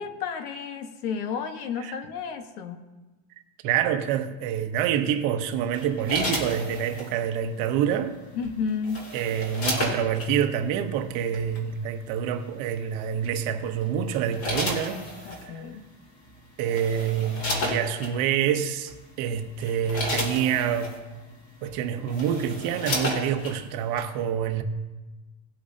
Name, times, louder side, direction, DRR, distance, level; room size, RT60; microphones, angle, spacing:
voice 1, 0.0-2.8 8.3-9.0 15.2-15.8, left 6 dB, 90° left, 1.4 m, -32 dB
voice 2, 3.6-8.1 9.1-15.5 16.6-21.0 21.6-24.6, right 8 dB, 50° right, 0.9 m, -27 dB
sound 1, 5.7-7.1 8.4-10.3 11.3-11.6 13.2-13.5 14.1-15.4 16.3-16.4 16.7-18.1 18.9-19.0 19.5-21.0 21.6-21.7 22.0-23.6 24.0-24.1, left 1 dB, 30° left, 2.1 m, -32 dB
18.0 x 8.3 x 2.8 m
cardioid pair, 170°, 43 cm